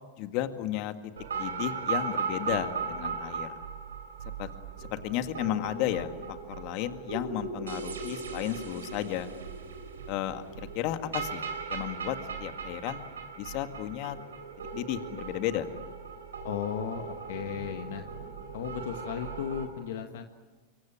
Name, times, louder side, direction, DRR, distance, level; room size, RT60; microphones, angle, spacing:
voice 1, 0.2-0.9 1.3-3.5 4.4-4.5 4.8-9.3 10.1-13.0 13.4-14.2 14.7-15.7, left 12 dB, 50° left, 8 dB, 1.9 m, -33 dB
sound 1, 1.2-19.6, right 5 dB, 85° right, 3.9 m, -38 dB
voice 2, 16.4-18.1 18.5-20.2, left 9 dB, 70° left, 6 dB, 1.6 m, -35 dB
26.0 x 23.0 x 8.9 m, 1.4 s
hypercardioid pair, 100°, 0 cm